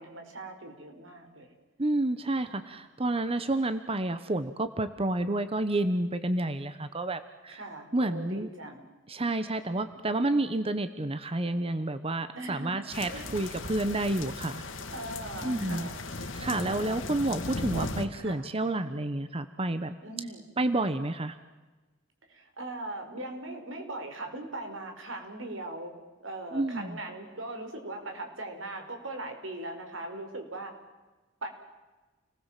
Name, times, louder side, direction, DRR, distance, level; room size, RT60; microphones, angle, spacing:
voice 1, 0.0-1.5 2.3-2.7 7.5-8.8 12.3-13.3 14.9-16.0 16.4-17.0 18.2-18.5 20.0-20.4 22.3-25.9 26.2-30.8 31.4-31.5, right 2 dB, 85° right, 5 dB, 5.1 m, -40 dB
voice 2, 1.8-7.6 7.9-8.5 9.1-14.6 15.4-15.9 16.3-20.0 20.6-21.4 26.5-27.0, right 2 dB, 30° right, 11 dB, 1.1 m, -30 dB
sound 1, 12.9-18.0, left 2 dB, 85° left, 2.4 m, -37 dB
30.0 x 20.0 x 7.5 m, 1.2 s
head